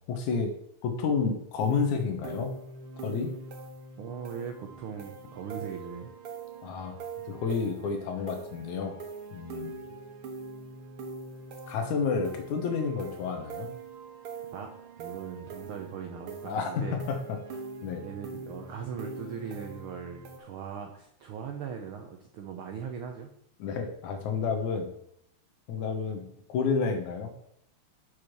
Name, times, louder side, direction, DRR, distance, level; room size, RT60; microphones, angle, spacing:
voice 1, 0.1-0.5 0.8-2.5 3.0-3.3 6.6-7.0 7.3-9.0 9.3-9.7 11.7-13.7 16.5-17.4 17.8-18.0 23.6-24.9 25.7-27.3, left 5 dB, 80° left, 5 dB, 2.5 m, -30 dB
sound 1, 1.6-20.4, right 4 dB, 60° right, 1.6 m, -43 dB
voice 2, 4.0-6.1 9.9-10.0 14.5-14.7 15.0-17.0 18.0-23.3, right 7 dB, 85° right, 4 dB, 1.2 m, -39 dB
6.9 x 4.8 x 6.0 m, 0.72 s
omnidirectional pair, 3.4 m